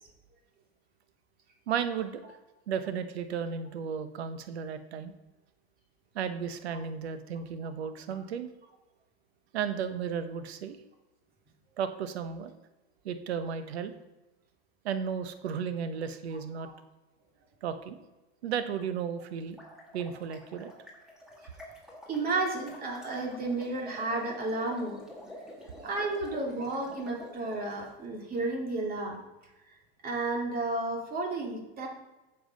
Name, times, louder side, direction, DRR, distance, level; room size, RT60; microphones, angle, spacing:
voice 1, 1.7-2.2 2.7-5.1 6.1-8.5 9.5-10.8 11.8-12.6 13.0-13.9 14.8-16.7 17.6-18.0 18.4-19.6 19.9-20.7, right 7 dB, 90° right, 10 dB, 1.0 m, -34 dB
sound 1, 19.4-27.9, left 1 dB, ahead, 2.0 m, -49 dB
voice 2, 22.1-25.0 25.8-29.2 30.0-31.9, right 2 dB, 30° right, 0 dB, 2.5 m, -32 dB
7.9 x 7.2 x 5.2 m, 1.1 s
supercardioid pair, 130°, 31 cm